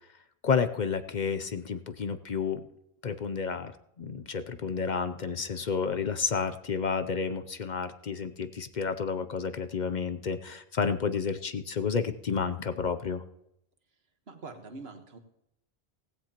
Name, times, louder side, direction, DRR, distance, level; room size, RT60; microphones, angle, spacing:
voice 1, 0.4-2.6 3.0-3.7 4.0-13.2, left 5 dB, 50° left, 10 dB, 0.7 m, -30 dB
voice 2, 14.3-15.2, right 3 dB, 75° right, 6 dB, 1.6 m, -44 dB
17.0 x 15.5 x 2.9 m, 0.80 s
omnidirectional pair, 1.1 m